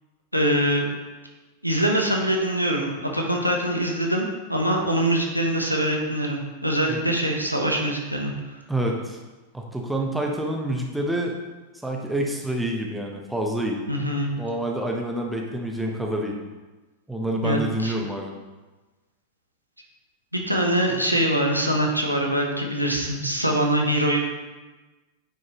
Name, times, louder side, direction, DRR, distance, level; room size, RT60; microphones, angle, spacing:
voice 1, 0.3-0.9 1.6-8.3 13.9-14.3 17.4-17.9 20.3-24.2, right 1 dB, 90° right, 0 dB, 1.0 m, -23 dB
voice 2, 8.7-9.2 9.5-11.3 11.8-13.8 14.4-16.4 17.1-18.3, right 1 dB, 5° right, 0 dB, 1.1 m, -27 dB
9.1 x 5.3 x 3.1 m, 1.2 s
figure-of-eight pair, 90°, 0 cm